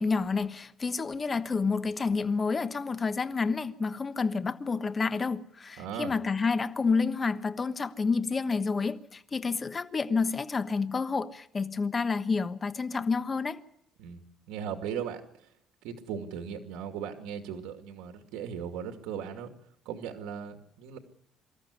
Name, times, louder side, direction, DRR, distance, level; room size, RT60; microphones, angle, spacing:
voice 1, 0.0-13.6, left 4 dB, 25° left, 1.2 m, -29 dB
voice 2, 5.8-6.1 14.0-14.2 14.5-15.2 15.8-19.5 19.8-21.0, right 8 dB, 90° right, 2.5 m, -37 dB
24.5 x 14.0 x 9.7 m
cardioid pair, 125°, 0 cm